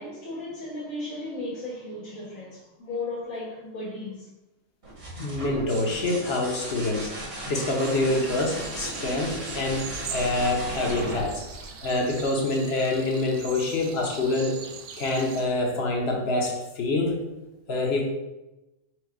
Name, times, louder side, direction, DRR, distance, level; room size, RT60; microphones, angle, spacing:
voice 1, 0.0-4.3, left 2 dB, 85° left, 1.4 m, -35 dB
sound 1, 4.8-12.4 14.2-14.8, right 1 dB, 55° right, 1.5 m, -36 dB
voice 2, 5.2-7.1 7.5-11.4 11.8-14.6 15.0-17.2 17.7-18.0, left 2 dB, 55° left, 1.0 m, -26 dB
sound 2, 7.7-15.5, right 6 dB, 75° right, 0.9 m, -42 dB
4.7 x 2.2 x 4.5 m
omnidirectional pair, 1.4 m